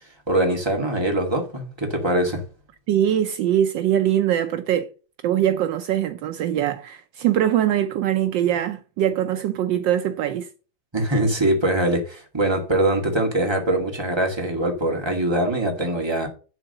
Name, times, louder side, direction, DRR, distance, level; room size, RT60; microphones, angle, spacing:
voice 1, 0.3-2.4 10.9-16.3, right 1 dB, 15° right, 2.1 m, -22 dB
voice 2, 2.9-4.9 5.2-10.5, right 11 dB, 75° right, 1.3 m, -22 dB
11.0 x 3.9 x 6.6 m
omnidirectional pair, 2.1 m